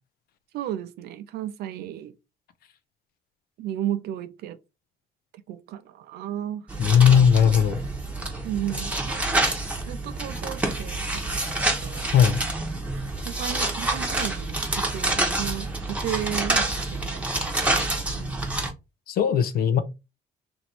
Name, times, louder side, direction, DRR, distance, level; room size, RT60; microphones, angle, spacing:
voice 1, 0.5-2.1 3.6-4.6 5.5-6.7 7.1-7.2 8.4-9.3 9.9-11.5 11.8-12.1 13.3-14.6 14.9-17.2 17.8-18.3, right 11 dB, 70° right, 0.5 m, -34 dB
sound 1, 6.7-18.7, right 2 dB, 10° right, 0.9 m, -27 dB
voice 2, 6.8-7.8 12.1-12.4 19.1-19.8, left 8 dB, 65° left, 0.5 m, -18 dB
3.0 x 2.6 x 4.3 m
cardioid pair, 110°, 17 cm